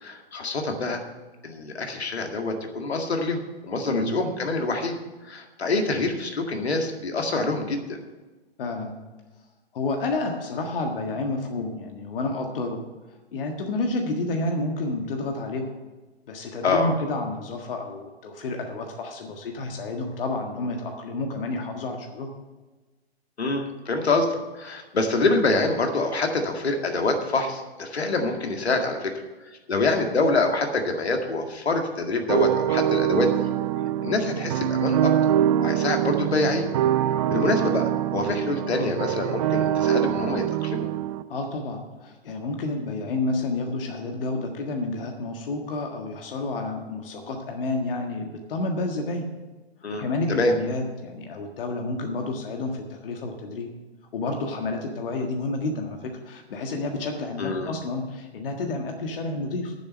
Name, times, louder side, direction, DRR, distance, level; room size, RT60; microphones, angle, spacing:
voice 1, 0.0-1.0 1.4-5.0 5.2-8.0 16.6-17.0 23.4-29.1 29.7-33.5 34.0-35.1 35.6-36.7 37.3-40.9 49.8-50.5 57.4-57.7, left 3 dB, 75° left, 4 dB, 2.0 m, -26 dB
voice 2, 8.6-9.0 9.7-12.8 13.3-15.7 16.3-22.3 41.3-49.3 50.0-53.7 54.1-59.7, left 2 dB, 60° left, 3 dB, 1.7 m, -30 dB
sound 1, 32.3-41.2, right 11 dB, 30° right, 0.4 m, -24 dB
9.7 x 7.5 x 8.2 m, 1.2 s
figure-of-eight pair, 120°, 32 cm